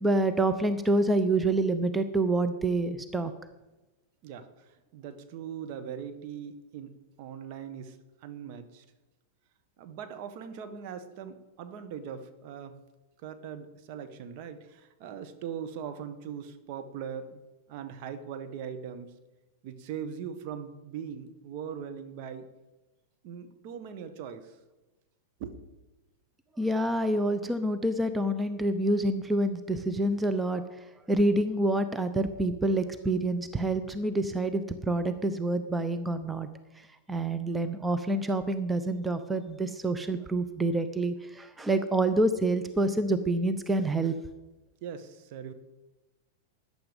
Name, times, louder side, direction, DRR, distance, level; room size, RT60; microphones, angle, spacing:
voice 1, 0.0-3.3 26.6-36.5 36.8-44.1, right 2 dB, 10° right, 10 dB, 0.8 m, -27 dB
voice 2, 4.2-6.9 7.2-8.8 9.8-12.8 13.2-17.4 17.7-19.1 19.6-22.5 23.2-24.6 25.4-25.7 44.8-45.5, right 7 dB, 50° right, 9 dB, 1.5 m, -40 dB
14.0 x 10.0 x 5.2 m, 1.1 s
hypercardioid pair, 105°, 0 cm